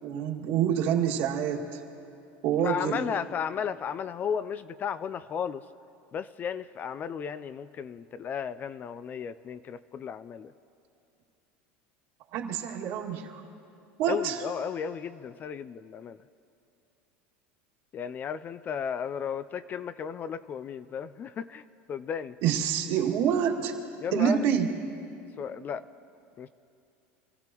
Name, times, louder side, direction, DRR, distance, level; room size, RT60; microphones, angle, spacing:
voice 1, 0.0-1.8 2.4-3.0 12.3-13.4 14.0-14.4 22.4-23.7 24.1-24.7, right 8 dB, 65° right, -1 dB, 2.2 m, -27 dB
voice 2, 2.6-5.6 6.1-10.5 14.1-16.2 17.9-22.4 24.0-24.4 25.4-25.8 26.4-26.5, left 7 dB, 30° left, 14 dB, 0.4 m, -34 dB
27.5 x 15.0 x 3.0 m, 2.6 s
supercardioid pair, 125°, 6 cm